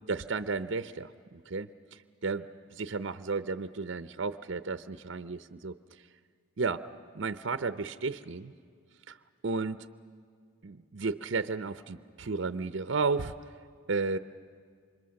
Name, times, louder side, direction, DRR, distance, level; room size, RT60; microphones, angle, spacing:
voice 1, 0.1-1.7 2.2-5.8 6.6-6.9 7.1-8.5 9.1-9.2 9.4-9.9 10.6-13.3 13.9-14.2, right 4 dB, 60° right, 12 dB, 0.7 m, -33 dB
28.0 x 26.0 x 6.5 m, 2.1 s
head